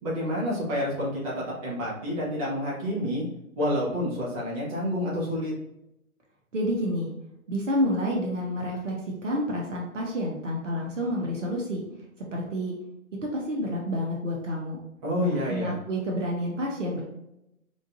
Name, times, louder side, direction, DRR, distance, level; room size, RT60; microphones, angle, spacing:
voice 1, 0.0-3.2 3.6-5.5 15.0-15.8, left 1 dB, 25° right, -6 dB, 1.4 m, -28 dB
voice 2, 6.5-7.1 7.5-8.9 9.2-11.8 12.3-12.7 13.2-14.8 15.2-17.0, equal, 55° right, -1 dB, 1.1 m, -29 dB
3.8 x 3.7 x 2.5 m, 0.84 s
figure-of-eight pair, 140°, 43 cm